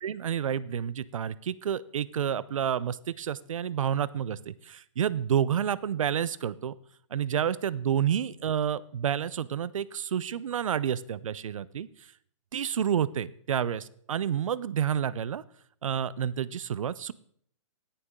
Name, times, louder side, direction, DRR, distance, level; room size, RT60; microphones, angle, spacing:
voice 1, 0.0-6.7 7.1-11.9 12.5-15.4 15.8-17.1, right 9 dB, 80° right, 19 dB, 0.6 m, -29 dB
18.0 x 6.9 x 3.7 m, 0.63 s
hypercardioid pair, 165°, 17 cm